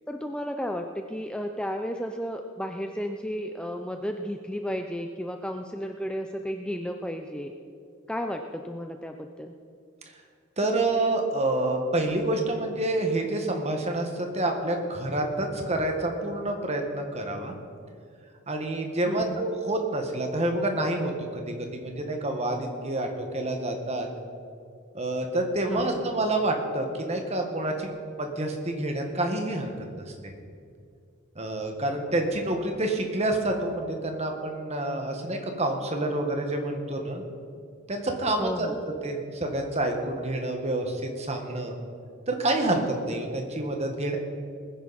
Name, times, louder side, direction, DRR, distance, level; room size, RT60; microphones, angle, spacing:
voice 1, 0.1-7.5 8.1-9.5 19.1-19.5 25.7-26.0 38.4-38.8, equal, 5° left, 5 dB, 0.4 m, -33 dB
voice 2, 10.6-17.6 18.5-21.4 21.7-23.1 23.3-24.1 24.9-27.9 28.2-29.7 30.0-30.1 31.3-37.2 37.9-38.7 39.0-41.7 42.3-44.2, right 2 dB, 30° right, 3 dB, 1.6 m, -28 dB
20.0 x 10.5 x 4.2 m, 2.4 s
head